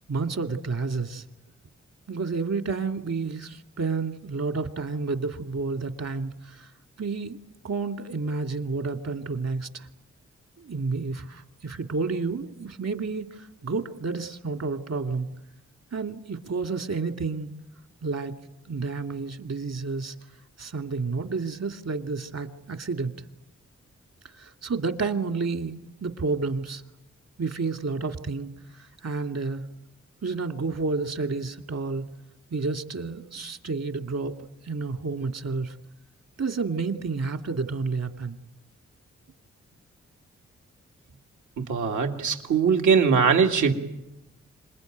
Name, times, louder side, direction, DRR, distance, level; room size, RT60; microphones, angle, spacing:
voice 1, 0.1-1.2 2.1-6.7 7.0-7.4 7.6-9.9 10.6-15.3 15.9-17.5 18.0-18.3 18.7-20.1 20.6-23.1 24.4-26.8 27.4-28.5 29.0-29.6 30.2-32.0 32.5-34.4 34.6-35.7 36.4-38.4, right 4 dB, 60° right, 6 dB, 2.3 m, -30 dB
voice 2, 41.6-43.7, right 6 dB, 85° right, 3 dB, 2.2 m, -21 dB
26.5 x 21.5 x 9.2 m, 0.91 s
supercardioid pair, 45°, 29 cm